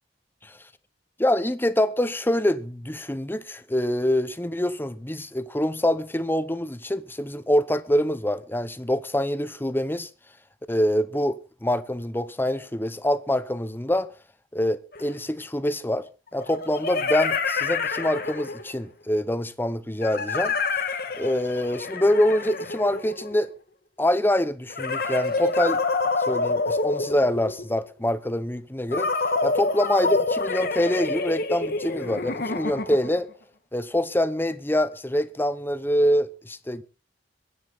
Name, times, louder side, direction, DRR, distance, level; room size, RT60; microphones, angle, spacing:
voice 1, 1.2-10.1 10.7-14.1 14.5-16.1 16.3-20.5 21.2-23.5 24.0-25.8 26.3-29.1 29.4-33.3 33.7-36.8, left 1 dB, 10° left, 0.9 m, -25 dB
sound 1, 14.9-15.0 16.4-18.8 20.0-23.5 24.7-27.7 28.9-33.2, left 3 dB, 60° left, 1.9 m, -27 dB
22.5 x 10.0 x 4.0 m
head